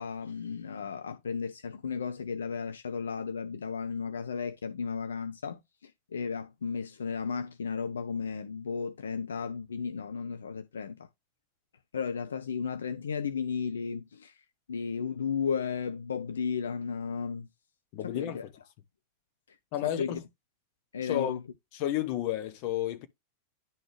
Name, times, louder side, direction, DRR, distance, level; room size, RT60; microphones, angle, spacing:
voice 1, 0.0-11.1 11.9-17.5 18.0-18.4 19.5-19.6 19.8-20.2 20.9-21.4, left 6 dB, 70° left, 0.6 m, -34 dB
voice 2, 17.9-18.4 19.7-20.2 21.0-21.4 21.7-23.1, left 12 dB, 45° left, 1.1 m, -31 dB
10.5 x 4.0 x 3.1 m
figure-of-eight pair, 90°, 0 cm